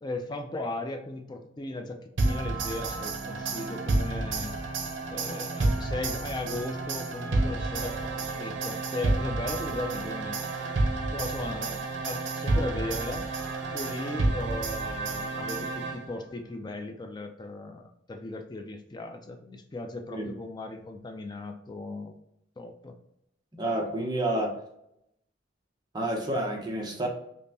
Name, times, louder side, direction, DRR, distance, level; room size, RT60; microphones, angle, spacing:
voice 1, 0.0-4.6 5.1-10.7 11.1-13.3 13.7-22.2 22.6-22.9, left 2 dB, 20° left, 6 dB, 0.3 m, -37 dB
sound 1, 2.2-16.3, right 2 dB, 75° right, 0.6 m, -30 dB
voice 2, 23.5-24.5 25.9-27.1, right 1 dB, 20° right, 1 dB, 0.6 m, -29 dB
5.2 x 2.1 x 2.7 m, 0.79 s
head